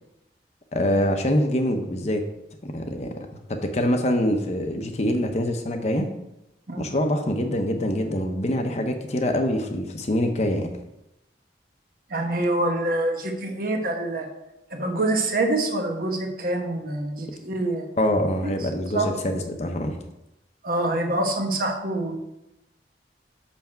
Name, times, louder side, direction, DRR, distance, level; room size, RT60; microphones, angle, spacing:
voice 1, 0.7-2.2 2.6-6.1 6.8-10.7 18.0-20.0, left 1 dB, 40° left, 5 dB, 0.7 m, -25 dB
voice 2, 12.1-14.3 14.7-17.9 18.4-18.5 18.9-19.1 20.6-22.2, right 2 dB, 50° right, 4 dB, 1.0 m, -25 dB
6.3 x 5.8 x 4.4 m, 0.90 s
head